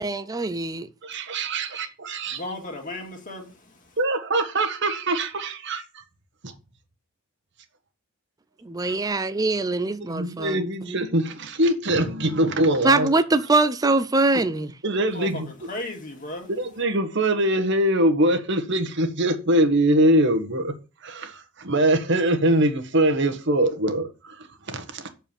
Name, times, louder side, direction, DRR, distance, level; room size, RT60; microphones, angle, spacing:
voice 1, 0.0-0.9 1.7-1.9 8.6-10.9 12.8-14.7, right 2 dB, 15° right, 0.5 m, -23 dB
voice 2, 1.0-2.4 4.0-5.8 6.4-6.5 8.8-8.9 10.0-13.1 14.8-15.5 16.5-20.7 21.0-25.1, right 1 dB, 60° right, 1.3 m, -23 dB
voice 3, 2.3-4.0 15.1-16.5, left 1 dB, 40° left, 2.2 m, -36 dB
7.2 x 4.6 x 7.0 m
head